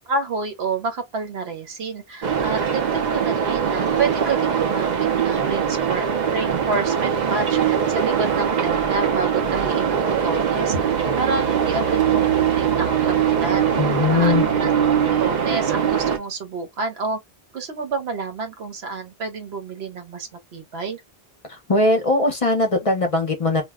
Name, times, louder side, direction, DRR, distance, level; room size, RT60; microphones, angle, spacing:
voice 1, 0.1-6.0 6.3-17.2 17.5-21.0, right 4 dB, 90° right, 1.0 m, -29 dB
sound 1, 2.2-16.2, right 7 dB, 55° right, 0.6 m, -21 dB
voice 2, 13.8-14.5 21.5-23.6, left 2 dB, 40° left, 0.7 m, -20 dB
2.4 x 2.0 x 3.4 m
omnidirectional pair, 1.0 m